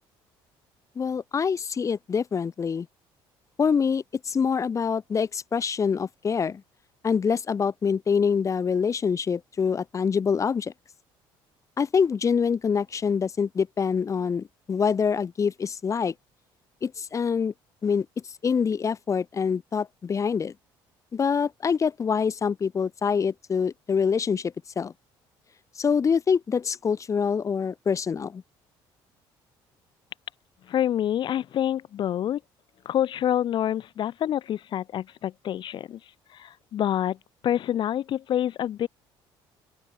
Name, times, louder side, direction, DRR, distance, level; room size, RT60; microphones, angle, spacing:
voice 1, 1.0-2.9 3.6-6.6 7.0-10.7 11.8-16.1 16.8-17.5 17.8-20.5 21.1-24.9 25.8-28.4, left 6 dB, 35° left, 5.4 m, -25 dB
voice 2, 30.7-32.4 32.9-36.0 36.3-37.2 37.4-38.9, left 11 dB, 55° left, 3.9 m, -27 dB
open air
cardioid pair, 115°, 10 cm